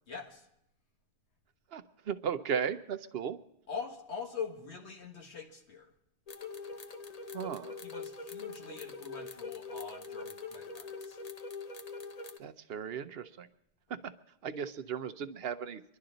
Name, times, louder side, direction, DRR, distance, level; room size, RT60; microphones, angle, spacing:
voice 1, 0.1-0.4 3.7-5.9 7.8-11.2, left 6 dB, 85° left, 1 dB, 2.0 m, -43 dB
voice 2, 1.7-3.4 7.3-7.8 12.4-13.5 14.0-14.1 14.4-15.8, right 7 dB, 65° right, 11 dB, 0.9 m, -36 dB
sound 1, 6.3-12.4, left 4 dB, 40° left, 0.8 m, -43 dB
25.5 x 11.5 x 3.9 m, 0.77 s
omnidirectional pair, 1.1 m